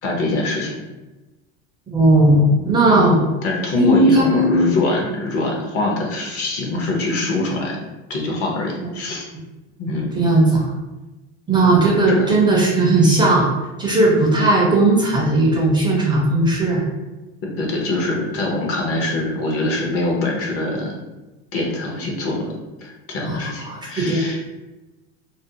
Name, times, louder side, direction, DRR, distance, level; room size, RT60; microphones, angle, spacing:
voice 1, 0.0-0.8 2.9-3.1 3.4-7.8 8.1-9.2 9.8-10.1 12.1-12.3 17.4-20.9 21.5-22.5 22.8-24.4, left 2 dB, 45° left, -1 dB, 0.7 m, -23 dB
voice 2, 1.9-3.2 3.8-4.7 10.1-10.7 11.5-13.4 13.8-16.8 23.3-23.4 23.7-24.2, right 2 dB, 15° right, -4 dB, 0.5 m, -16 dB
2.5 x 2.0 x 2.7 m, 1.1 s
supercardioid pair, 130°, 32 cm